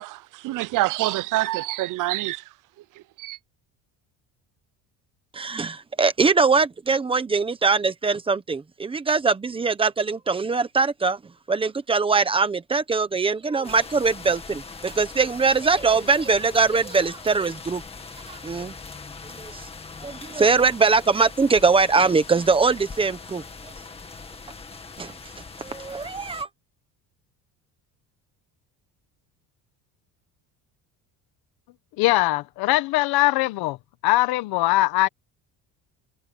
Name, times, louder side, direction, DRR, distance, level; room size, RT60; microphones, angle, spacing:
voice 1, 0.0-2.4 3.2-3.4, right 17 dB, 50° right, 0.6 m, -26 dB
voice 2, 5.3-11.2 11.5-17.8 18.3-18.7 19.4-19.5 20.0-23.4 25.0-25.1 25.6-26.5, right 4 dB, 15° right, 1.0 m, -22 dB
sound 1, 13.6-26.4, left 4 dB, 15° left, 2.0 m, -41 dB
voice 3, 32.0-33.8 34.0-35.1, left 18 dB, 65° left, 1.1 m, -21 dB
cardioid pair, 180°, 39 cm